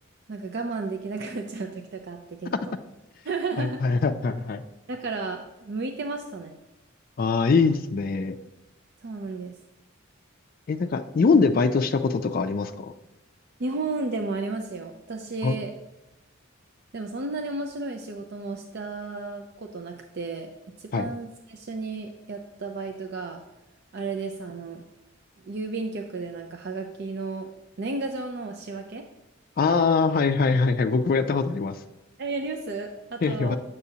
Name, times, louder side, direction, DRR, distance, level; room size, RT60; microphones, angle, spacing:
voice 1, 0.3-2.8 3.2-3.8 4.9-6.6 9.0-9.6 13.6-15.7 16.9-20.5 20.8-23.4 23.9-24.8 25.4-27.5 27.8-29.0 32.2-33.6, right 3 dB, 55° right, 4 dB, 0.5 m, -33 dB
voice 2, 3.6-4.6 7.2-8.3 10.7-12.9 15.4-15.6 20.9-21.1 29.6-31.8 33.2-33.6, left 4 dB, 45° left, 7 dB, 0.4 m, -23 dB
8.2 x 6.8 x 2.8 m, 1.0 s
head